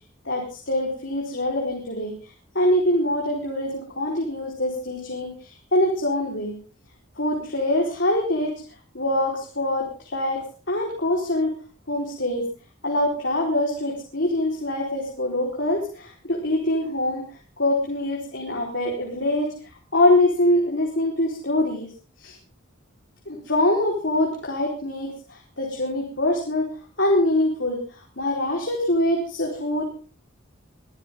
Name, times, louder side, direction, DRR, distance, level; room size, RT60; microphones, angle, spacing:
voice 1, 0.2-6.6 7.2-8.6 8.9-11.5 11.9-12.4 12.8-17.2 17.6-19.5 19.9-21.9 22.2-22.4 23.3-26.7 27.0-29.8, left 1 dB, 60° left, -1 dB, 4.4 m, -24 dB
23.5 x 14.0 x 3.7 m, 0.37 s
head